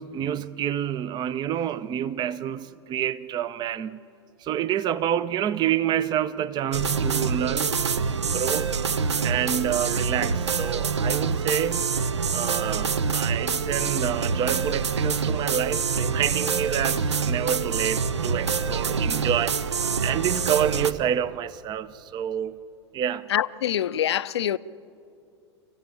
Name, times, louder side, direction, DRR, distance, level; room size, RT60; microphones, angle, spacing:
voice 1, 0.0-4.0 4.4-7.8 8.3-8.7 9.2-11.9 12.3-22.6 22.9-23.3, right 10 dB, 30° right, 0.6 m, -28 dB
sound 1, 6.7-20.9, right 5 dB, 80° right, 0.7 m, -26 dB
voice 2, 23.3-24.6, left 11 dB, 70° left, 0.5 m, -25 dB
25.5 x 15.0 x 8.8 m
figure-of-eight pair, 90°, 15 cm